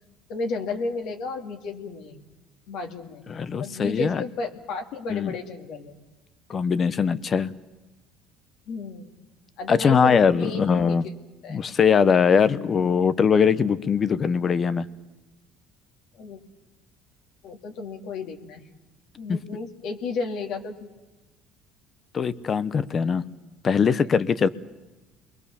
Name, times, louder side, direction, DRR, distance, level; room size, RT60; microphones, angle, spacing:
voice 1, 0.3-2.2 2.7-6.0 8.7-9.1 9.6-11.1 11.4-11.6 16.1-16.4 17.4-18.6 19.2-20.9, left 3 dB, 70° left, 3 dB, 2.5 m, -33 dB
voice 2, 3.3-4.2 5.1-5.3 6.5-7.5 9.7-11.1 11.5-14.9 19.3-19.4 22.1-23.2 23.6-24.5, left 6 dB, 35° left, 16 dB, 1.0 m, -21 dB
28.5 x 22.0 x 7.1 m, 1.1 s
supercardioid pair, 100°, 0 cm